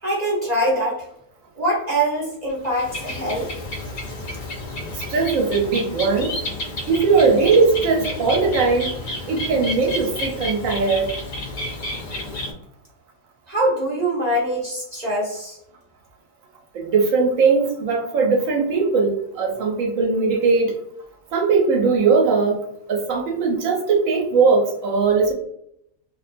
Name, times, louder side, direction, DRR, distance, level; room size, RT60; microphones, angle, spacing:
voice 1, 0.0-1.1 1.6-3.5 13.5-15.6, right 1 dB, 55° right, -4 dB, 0.4 m, -23 dB
Bird, 2.5-12.5, left 1 dB, 55° left, 0.6 m, -31 dB
voice 2, 4.9-6.4 6.9-8.9 9.3-11.1 16.7-20.7 21.3-22.6 22.9-25.3, right 4 dB, 70° right, 1 dB, 0.9 m, -19 dB
2.4 x 2.2 x 2.5 m, 0.74 s
omnidirectional pair, 1.6 m